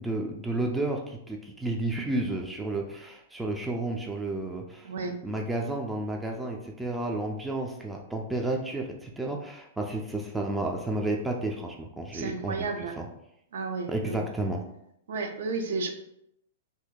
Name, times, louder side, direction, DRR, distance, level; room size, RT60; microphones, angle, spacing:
voice 1, 0.0-4.9 5.2-12.7 13.0-13.1 13.9-14.6, right 2 dB, 5° right, 0 dB, 0.4 m, -31 dB
voice 2, 4.8-5.2 12.1-13.0 13.5-14.2 15.1-15.9, right 4 dB, 60° right, 4 dB, 0.5 m, -32 dB
2.7 x 2.7 x 3.7 m, 0.79 s
figure-of-eight pair, 105°, 0 cm